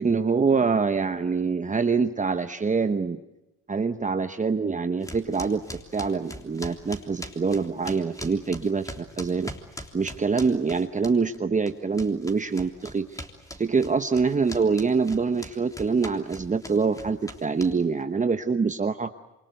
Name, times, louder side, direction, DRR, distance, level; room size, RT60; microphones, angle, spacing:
voice 1, 0.0-3.2 3.7-5.6 5.9-9.5 9.9-13.2 13.6-19.1, right 5 dB, 25° right, 8 dB, 1.0 m, -25 dB
sound 1, 5.0-11.4 11.7-18.0, equal, 10° left, 3.4 m, -41 dB
27.5 x 24.5 x 8.0 m, 1.0 s
cardioid pair, 90°, 30 cm